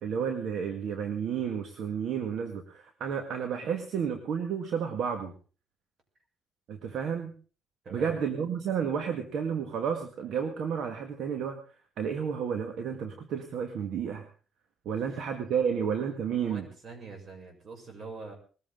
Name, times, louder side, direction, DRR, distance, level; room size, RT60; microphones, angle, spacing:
voice 1, 0.0-5.3 6.7-7.3 7.9-11.6 12.0-14.3 14.9-16.7, right 7 dB, 75° right, 6 dB, 1.9 m, -31 dB
voice 2, 16.4-18.3, right 4 dB, 50° right, 3 dB, 7.0 m, -43 dB
21.0 x 15.0 x 3.8 m, 0.39 s
cardioid pair, 90°, 0 cm